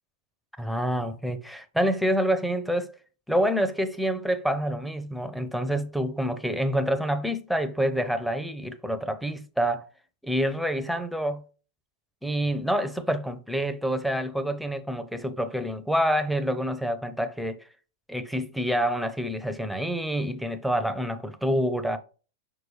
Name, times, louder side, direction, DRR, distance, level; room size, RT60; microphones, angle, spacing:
voice 1, 0.6-2.9 3.3-9.9 10.2-11.4 12.2-17.6 18.1-22.0, equal, ahead, 0.7 m, -27 dB
6.2 x 4.7 x 3.2 m
figure-of-eight pair, 100°, 0 cm